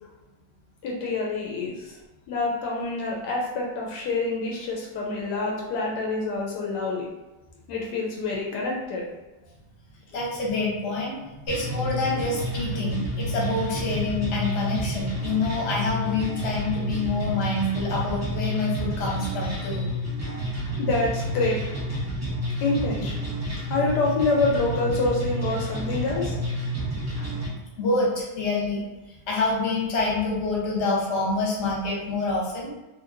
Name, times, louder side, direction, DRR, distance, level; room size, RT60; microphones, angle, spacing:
voice 1, 0.8-2.0 2.3-7.1 7.7-9.0 20.2-20.4 20.6-21.7 22.6-23.3 23.7-26.5 27.2-27.3, left 3 dB, 80° left, -2 dB, 1.1 m, -27 dB
voice 2, 10.1-19.9 27.8-28.8 29.1-32.7, left 3 dB, 50° left, -4 dB, 1.1 m, -27 dB
sound 1, 11.5-27.5, equal, 15° right, 0.6 m, -30 dB
2.8 x 2.8 x 2.5 m, 1.1 s
omnidirectional pair, 1.8 m